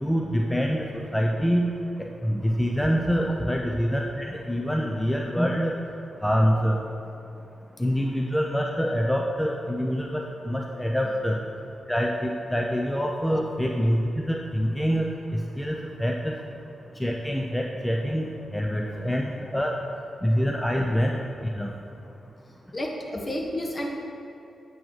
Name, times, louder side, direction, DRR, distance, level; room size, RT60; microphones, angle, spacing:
voice 1, 0.0-1.7 2.0-5.8 6.2-6.8 7.8-11.4 11.9-16.3 17.0-19.7 20.2-21.2 21.5-21.7, equal, 5° left, 1 dB, 0.6 m, -25 dB
voice 2, 22.7-23.9, left 1 dB, 40° left, 0 dB, 1.3 m, -31 dB
8.8 x 6.2 x 3.2 m, 2.9 s
supercardioid pair, 40°, 0 cm